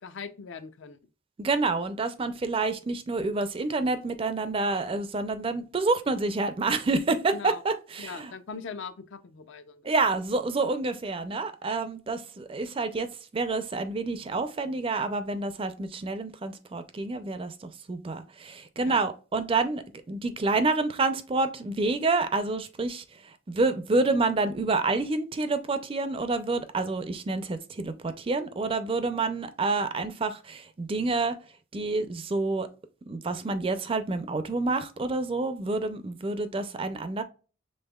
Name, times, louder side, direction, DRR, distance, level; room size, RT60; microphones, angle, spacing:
voice 1, 0.0-1.0 7.3-7.6 8.0-9.9 18.8-19.0, left 5 dB, 65° left, 0.5 m, -40 dB
voice 2, 1.4-8.3 9.8-31.4 31.7-32.7 33.1-37.2, right 3 dB, 25° right, 0.4 m, -28 dB
5.4 x 3.4 x 2.3 m
head